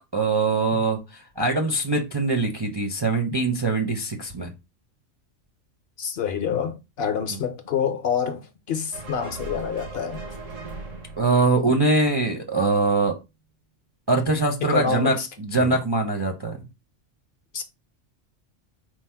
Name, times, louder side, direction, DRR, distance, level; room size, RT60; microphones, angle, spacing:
voice 1, 0.1-1.0 1.4-4.5 7.3-7.4 11.2-13.2 14.1-16.6, right 3 dB, 30° right, 0.4 m, -22 dB
voice 2, 6.0-8.4 8.7-10.2 14.6-15.3 15.5-15.8 17.5-17.6, left 7 dB, 60° left, 0.7 m, -27 dB
sound 1, 8.9-12.4, right 3 dB, 90° right, 1.6 m, -39 dB
4.6 x 2.0 x 4.3 m
omnidirectional pair, 1.3 m